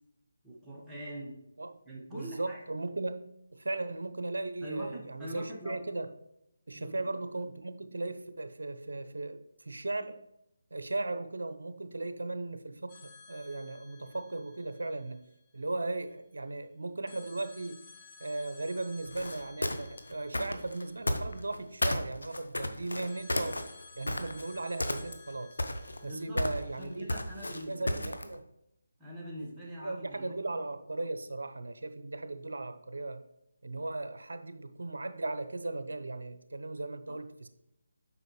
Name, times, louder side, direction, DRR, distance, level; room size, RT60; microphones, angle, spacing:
voice 1, 0.4-1.4 1.8-2.6 4.6-5.8 6.7-7.2 26.0-26.4 26.8-28.2 29.0-30.4 37.1-37.2, right 1 dB, 5° right, -6 dB, 1.4 m, -43 dB
voice 2, 2.1-6.1 6.7-9.4 9.6-10.2 10.7-15.2 15.5-17.8 18.2-23.6 24.0-25.6 26.0-27.1 27.7-28.4 29.8-33.2 33.6-37.5, right 2 dB, 75° right, 9 dB, 0.8 m, -37 dB
sound 1, 12.9-15.8 17.1-22.0 23.1-27.2, left 5 dB, 30° left, 1.0 m, -56 dB
sound 2, 19.1-21.6 21.8-24.5 24.8-25.3 25.6-28.3, left 1 dB, 90° left, 0.8 m, -32 dB
7.7 x 5.1 x 3.2 m, 0.83 s
figure-of-eight pair, 160°, 0 cm